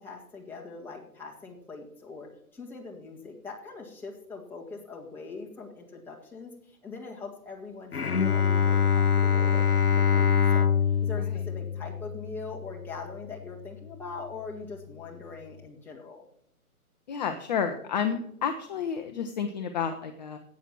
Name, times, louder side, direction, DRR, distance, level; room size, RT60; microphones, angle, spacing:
voice 1, 0.0-10.7 11.0-16.2, left 4 dB, 5° left, -3 dB, 1.9 m, -42 dB
Bowed string instrument, 7.9-13.2, left 7 dB, 90° left, 0.8 m, -24 dB
voice 2, 17.1-20.4, left 7 dB, 30° left, 6 dB, 0.8 m, -31 dB
11.0 x 8.5 x 6.0 m, 0.73 s
figure-of-eight pair, 135°, 44 cm